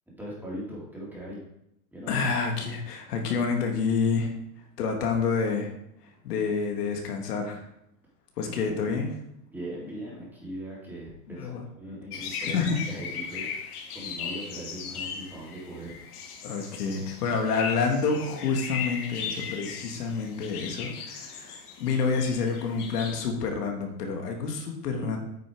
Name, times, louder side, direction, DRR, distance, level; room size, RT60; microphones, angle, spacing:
voice 1, 0.2-1.4 1.9-2.1 8.6-8.9 9.5-12.6 12.9-13.5 13.9-16.0 16.3-16.4, right 1 dB, 5° right, -6 dB, 3.1 m, -39 dB
voice 2, 2.1-5.7 6.0-7.7 8.4-9.1 11.3-11.6 12.5-12.8 16.4-25.2, left 5 dB, 90° left, 2 dB, 2.1 m, -28 dB
sound 1, 12.1-23.2, left 6 dB, 70° left, 2.1 m, -38 dB
9.1 x 5.9 x 4.6 m, 0.79 s
supercardioid pair, 145°, 46 cm